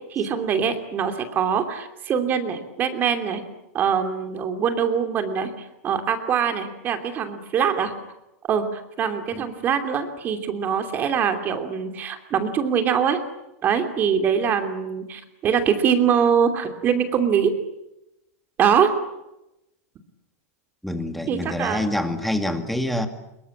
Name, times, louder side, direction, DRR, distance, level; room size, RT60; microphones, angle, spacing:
voice 1, 0.1-3.4 3.7-7.9 8.5-13.2 13.6-17.5 18.6-18.9 21.3-21.8, right 7 dB, 25° right, 7 dB, 2.8 m, -23 dB
voice 2, 20.8-23.1, left 1 dB, ahead, 7 dB, 2.1 m, -26 dB
25.0 x 23.0 x 8.7 m, 0.90 s
supercardioid pair, 160°, 8 cm